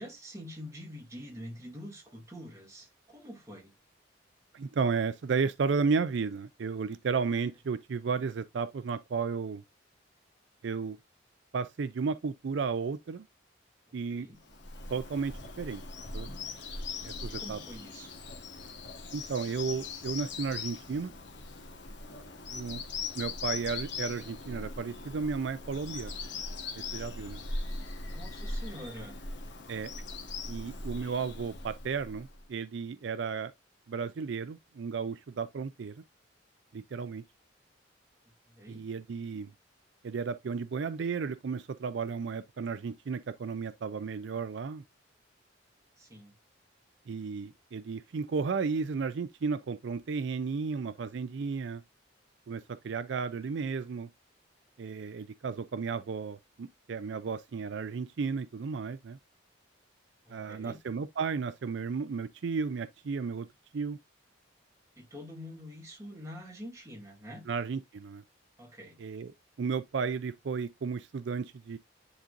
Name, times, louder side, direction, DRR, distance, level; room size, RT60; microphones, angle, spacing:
voice 1, 0.0-3.7 14.1-14.4 17.3-18.1 28.0-29.1 38.5-38.8 46.0-46.3 60.2-60.8 65.0-67.5 68.6-69.0, equal, 15° right, 2.2 m, -46 dB
voice 2, 4.5-9.6 10.6-11.0 11.5-13.2 13.9-14.3 14.9-15.8 16.1-16.3 17.0-17.6 19.1-21.1 22.5-22.8 23.2-26.1 26.9-27.4 29.7-29.9 30.5-33.5 33.9-36.0 36.7-37.2 38.7-39.5 40.0-44.8 47.1-51.8 52.5-54.1 54.8-59.2 60.3-63.5 63.7-64.0 67.5-68.2 69.0-69.3 69.6-71.8, right 5 dB, 65° right, 0.4 m, -33 dB
Bird vocalization bird call bird song, 14.4-32.4, left 3 dB, 65° left, 1.3 m, -40 dB
10.0 x 3.8 x 2.5 m
head